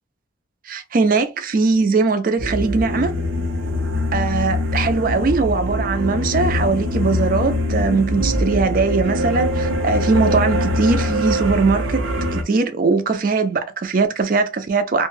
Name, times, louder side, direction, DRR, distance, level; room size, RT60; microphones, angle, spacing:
voice 1, 0.7-3.1 4.1-12.0 12.3-15.1, right 4 dB, 45° right, 0.4 m, -20 dB
sound 1, 2.4-12.4, left 1 dB, 90° right, 0.7 m, -22 dB
2.5 x 2.2 x 3.1 m
head